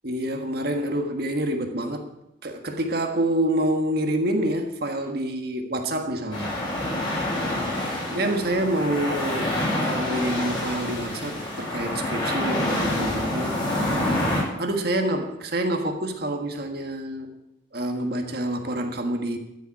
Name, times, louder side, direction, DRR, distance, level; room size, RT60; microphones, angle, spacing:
voice 1, 0.0-2.2 2.4-6.5 8.1-13.6 14.6-17.3 17.7-19.4, right 1 dB, 50° right, 1.6 m, -27 dB
sound 1, 6.3-14.4, left 1 dB, 25° left, 5.5 m, -27 dB
13.5 x 7.0 x 9.8 m
head